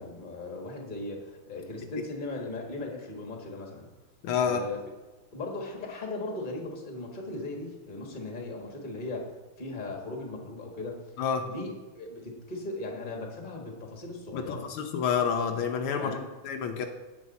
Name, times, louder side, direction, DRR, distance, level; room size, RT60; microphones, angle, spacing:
voice 1, 0.0-3.9 4.4-4.8 5.3-11.1 11.4-14.7 16.0-16.3, left 2 dB, 25° left, 1 dB, 1.6 m, -38 dB
voice 2, 4.2-4.6 11.2-11.5 14.3-16.1 16.4-16.9, left 7 dB, 80° left, 5 dB, 1.6 m, -28 dB
16.5 x 5.5 x 4.1 m, 1.2 s
omnidirectional pair, 2.4 m